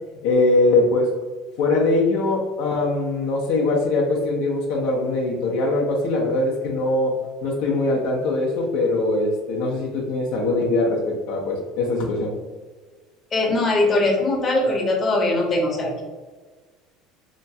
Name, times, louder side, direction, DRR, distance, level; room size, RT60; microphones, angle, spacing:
voice 1, 0.2-1.1 1.6-7.1 7.4-12.3, left 2 dB, 80° left, -2 dB, 0.6 m, -22 dB
voice 2, 13.3-16.0, left 2 dB, 30° left, 0 dB, 0.7 m, -21 dB
2.9 x 2.3 x 2.7 m, 1.3 s
cardioid pair, 135°, 0 cm